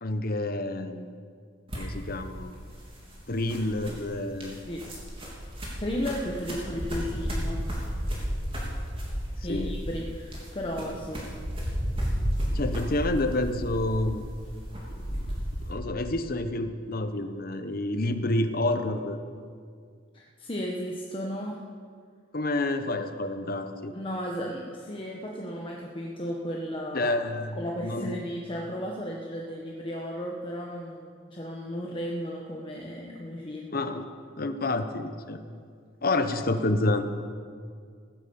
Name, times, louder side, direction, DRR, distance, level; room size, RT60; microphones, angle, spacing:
voice 1, 0.0-1.1 1.7-2.5 3.3-4.5 9.5-9.7 12.5-14.3 15.6-19.2 22.3-23.9 26.9-28.2 33.7-34.1 34.4-35.4 36.0-37.0, left 2 dB, 50° left, 8 dB, 1.0 m, -28 dB
sound 1, 1.7-15.7, equal, 30° right, 3.4 m, -33 dB
voice 2, 5.8-7.6 9.4-11.2 20.1-21.6 23.9-27.1 27.5-33.8, equal, 30° left, -1 dB, 1.2 m, -34 dB
15.5 x 11.0 x 7.1 m, 2.1 s
head